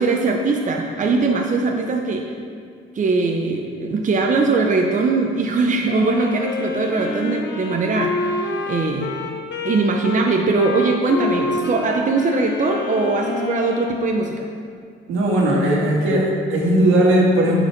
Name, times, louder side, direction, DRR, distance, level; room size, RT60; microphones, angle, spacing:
voice 1, 0.0-2.3 2.9-9.1 9.6-14.5, right 3 dB, 40° right, 2 dB, 0.8 m, -21 dB
Wind instrument woodwind instrument, 5.9-14.3, left 4 dB, 60° left, 1.1 m, -27 dB
voice 2, 15.1-17.6, right 1 dB, 80° right, -2 dB, 1.9 m, -17 dB
9.5 x 5.1 x 6.0 m, 2.2 s
cardioid pair, 90°, 20 cm